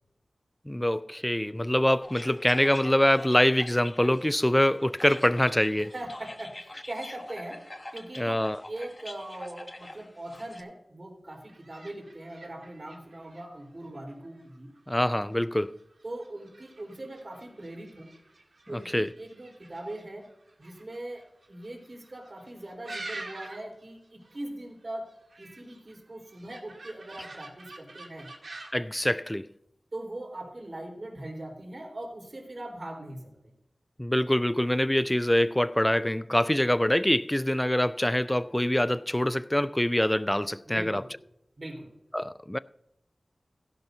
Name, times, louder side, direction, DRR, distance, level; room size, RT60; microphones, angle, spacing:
voice 1, 0.7-5.9 8.2-8.6 14.9-15.8 18.7-19.1 28.7-29.5 34.0-41.0 42.1-42.6, left 1 dB, 10° left, 0.3 m, -25 dB
sound 1, 2.0-10.6, left 1 dB, 30° left, 1.1 m, -45 dB
voice 2, 5.9-7.6 7.9-8.4 8.7-14.7 16.0-18.1 18.7-20.3 20.6-25.1 25.4-28.3 29.9-33.3 40.7-41.1 41.6-41.9, right 1 dB, 45° right, 3.8 m, -41 dB
sound 2, 11.3-23.8 24.1-24.5 24.8-28.8, right 2 dB, 75° right, 2.5 m, -47 dB
16.0 x 11.0 x 2.7 m
wide cardioid pair, 75°, 0 cm